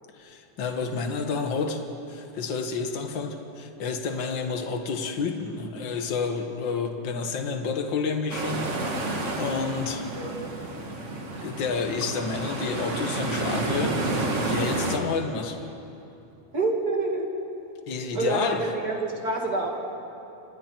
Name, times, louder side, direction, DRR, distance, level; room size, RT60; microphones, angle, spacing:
voice 1, 0.1-8.7 9.4-10.1 11.4-15.6 17.9-18.6, left 4 dB, 65° left, 5 dB, 1.1 m, -30 dB
sound 1, 8.3-15.0, right 2 dB, 75° right, 0.6 m, -30 dB
voice 2, 16.5-17.3 18.1-19.7, right 3 dB, 30° right, 0 dB, 2.4 m, -27 dB
28.5 x 25.5 x 4.6 m, 2.8 s
omnidirectional pair, 4.4 m